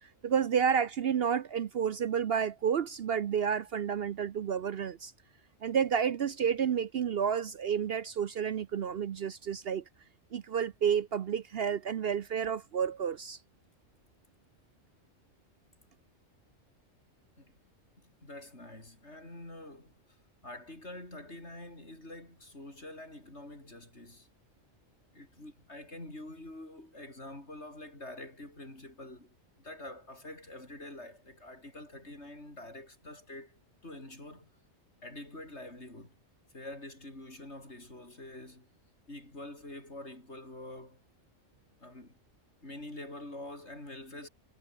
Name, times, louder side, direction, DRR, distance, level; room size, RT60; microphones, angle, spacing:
voice 1, 0.0-5.1 5.6-9.8 10.3-13.4, right 7 dB, 55° right, 0.8 m, -30 dB
voice 2, 18.0-19.9 20.4-24.3 25.1-34.5 35.0-36.2 36.5-38.7 39.1-41.0 41.8-42.2 42.6-44.3, left 1 dB, 60° left, 7.2 m, -46 dB
omnidirectional pair, 1.3 m